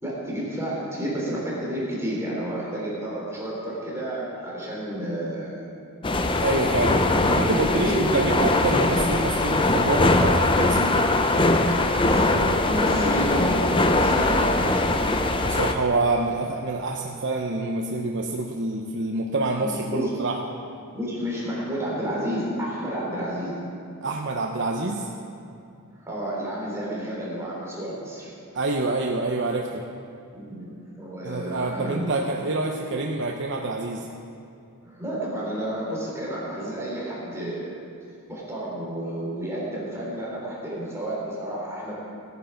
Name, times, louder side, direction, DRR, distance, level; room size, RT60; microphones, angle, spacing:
voice 1, 0.0-5.7 7.2-8.3 11.7-15.0 19.6-20.1 20.9-23.6 25.9-28.3 30.3-32.2 34.8-37.8 38.3-42.0, right 1 dB, 10° right, -6 dB, 3.7 m, -30 dB
sound 1, 6.0-15.7, left 2 dB, 20° left, 0.6 m, -21 dB
voice 2, 6.4-11.0 15.4-20.4 24.0-25.1 28.5-29.8 31.2-34.1, right 2 dB, 55° right, 1 dB, 0.8 m, -27 dB
16.0 x 9.7 x 5.7 m, 2.5 s
head